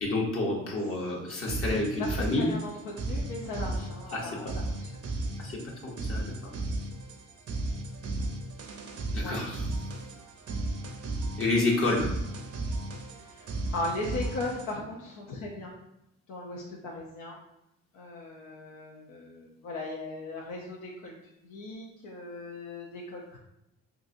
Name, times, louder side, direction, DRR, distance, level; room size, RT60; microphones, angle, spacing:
voice 1, 0.0-2.5 4.1-4.3 5.4-5.6 5.8-6.2 9.1-9.6 11.4-12.1, left 2 dB, 45° left, -2 dB, 0.8 m, -28 dB
sound 1, 1.3-14.8, right 2 dB, 55° right, 0.6 m, -35 dB
voice 2, 2.0-2.7 3.0-4.9 9.2-9.4 13.2-15.7 16.3-17.4 17.9-23.4, left 2 dB, 85° left, -3 dB, 0.6 m, -38 dB
3.7 x 2.8 x 2.5 m, 0.86 s
cardioid pair, 90°, 30 cm